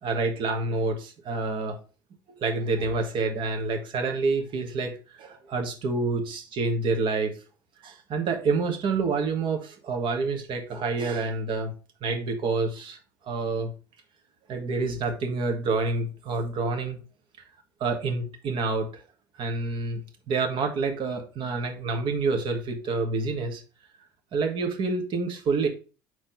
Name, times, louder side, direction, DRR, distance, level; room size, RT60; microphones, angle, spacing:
voice 1, 0.0-1.8 2.4-4.9 5.2-7.3 7.8-11.7 12.0-13.0 13.3-13.7 14.5-17.0 17.8-18.9 19.4-20.0 20.3-23.6 24.3-25.7, right 3 dB, 50° right, 4 dB, 1.7 m, -28 dB
4.8 x 4.1 x 5.3 m, 0.34 s
hypercardioid pair, 65°, 11 cm